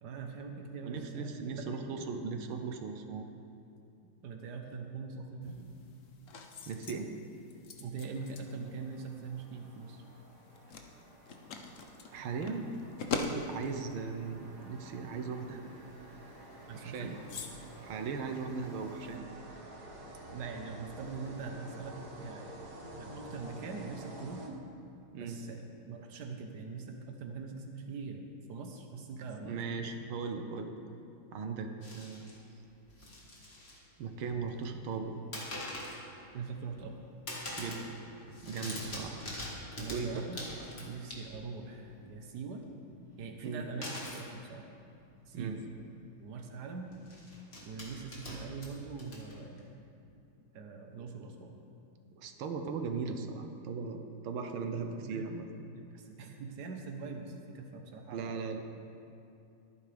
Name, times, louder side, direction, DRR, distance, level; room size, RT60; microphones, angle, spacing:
voice 1, 0.0-1.8 4.2-5.8 7.8-10.0 13.2-13.5 16.7-17.2 20.3-22.6 23.0-24.6 25.1-25.6 25.9-29.8 36.3-36.9 39.0-39.3 39.8-40.4 40.8-42.6 43.2-43.9 44.1-44.7 45.3-45.6 46.2-46.9 47.6-49.8 50.5-51.6 55.0-55.3 55.7-58.4, right 4 dB, 60° right, 3 dB, 1.6 m, -43 dB
voice 2, 0.8-3.3 6.7-7.2 12.1-12.7 13.5-15.8 16.7-17.1 17.8-19.3 25.1-25.4 29.4-30.7 31.3-32.5 34.0-35.2 37.5-38.0 38.4-39.2 39.9-40.2 43.0-43.6 45.3-45.6 52.2-55.5 58.1-58.6, right 5 dB, 90° right, 5 dB, 1.8 m, -38 dB
sound 1, 5.4-19.2, left 3 dB, 50° left, 1.0 m, -45 dB
Cinematic Rise, 8.2-25.0, right 1 dB, 35° right, 1.2 m, -50 dB
sound 2, 31.8-32.4 32.9-33.8 34.1-34.6 35.3-36.1 36.5-37.0 37.3-37.9 38.2-41.6 43.8-44.3 45.3-45.4 45.7-45.8 46.9-49.6, left 1 dB, 30° left, 2.2 m, -44 dB
22.5 x 9.7 x 3.5 m, 2.7 s
omnidirectional pair, 2.2 m